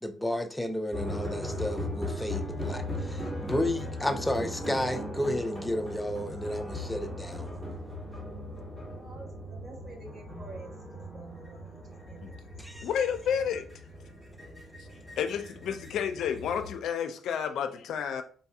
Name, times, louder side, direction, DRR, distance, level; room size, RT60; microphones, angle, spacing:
voice 1, 0.0-7.5 12.6-12.9, left 1 dB, 10° left, 0.5 m, -32 dB
sound 1, 0.9-16.7, left 1 dB, 10° right, 1.5 m, -38 dB
voice 2, 8.9-12.3, right 3 dB, 45° right, 1.5 m, -49 dB
voice 3, 12.8-13.7 15.2-18.2, left 8 dB, 75° left, 0.4 m, -30 dB
3.9 x 2.6 x 2.3 m
cardioid pair, 90°, 0 cm